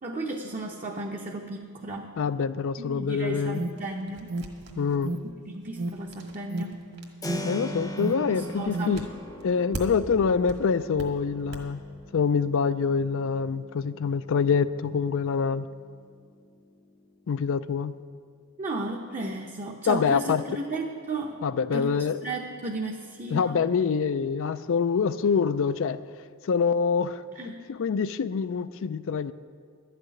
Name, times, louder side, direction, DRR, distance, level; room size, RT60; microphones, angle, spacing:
voice 1, 0.0-2.1 2.8-4.3 5.5-6.8 8.3-9.0 18.6-21.4 21.7-23.6 27.4-27.6, right 2 dB, 35° right, -1 dB, 0.8 m, -34 dB
voice 2, 2.2-3.7 4.8-5.1 7.4-9.1 9.4-11.8 12.1-15.7 17.3-17.9 19.9-20.4 21.4-22.2 23.3-26.0 26.4-29.3, left 6 dB, 60° left, 14 dB, 0.4 m, -25 dB
Alarm, 3.3-9.1, right 2 dB, 70° right, 0.7 m, -35 dB
sound 1, 3.8-10.2 10.5-11.6, right 1 dB, 50° right, 1.6 m, -42 dB
Keyboard (musical), 7.2-17.9, left 1 dB, 15° left, 0.7 m, -42 dB
12.0 x 6.7 x 9.5 m, 2.1 s
head